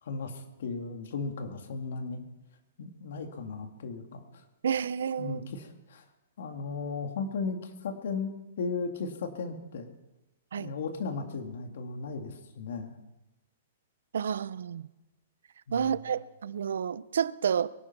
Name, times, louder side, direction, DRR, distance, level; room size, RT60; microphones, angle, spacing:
voice 1, 0.0-2.2 2.8-4.4 5.2-6.1 6.4-9.9 10.6-13.0 15.7-16.0, left 4 dB, 60° left, 2.2 m, -36 dB
voice 2, 4.6-5.4 10.5-10.7 14.1-14.8 15.7-17.7, right 7 dB, 80° right, 0.7 m, -30 dB
24.0 x 9.8 x 6.0 m
hypercardioid pair, 175°, 0 cm